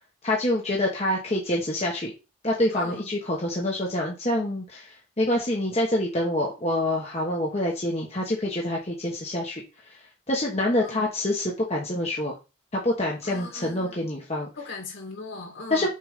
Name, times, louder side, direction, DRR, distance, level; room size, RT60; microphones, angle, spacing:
voice 1, 0.2-2.1 2.4-9.6 10.3-12.4 12.7-14.5 15.7-15.9, left 1 dB, 30° left, 1.2 m, -26 dB
voice 2, 2.7-3.1 10.8-11.1 13.2-14.1 14.6-15.9, left 3 dB, 65° left, 2.8 m, -38 dB
6.7 x 3.5 x 5.1 m
head